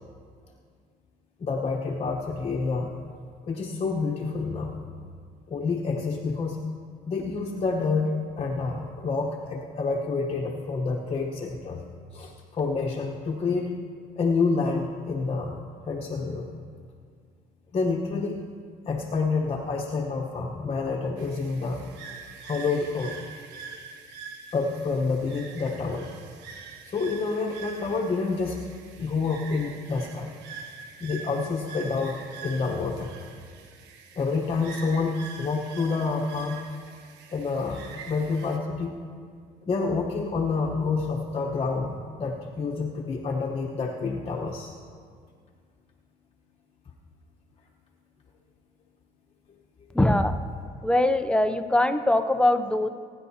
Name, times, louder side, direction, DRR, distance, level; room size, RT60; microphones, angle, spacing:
voice 1, 1.4-2.9 3.4-4.8 5.5-6.6 7.1-11.8 12.1-13.7 14.2-15.6 15.9-16.5 17.7-18.4 18.9-21.8 22.4-23.2 24.5-26.1 26.9-28.6 29.0-30.3 31.0-32.2 32.4-33.1 34.2-36.6 37.3-38.9 39.7-44.7, left 4 dB, 35° left, -2 dB, 1.1 m, -28 dB
sound 1, 21.2-38.6, right 5 dB, 85° right, 1.2 m, -44 dB
voice 2, 49.9-50.4 50.8-52.9, left 1 dB, 5° left, 9 dB, 0.6 m, -22 dB
21.0 x 10.0 x 2.8 m, 2.1 s
cardioid pair, 110°, 17 cm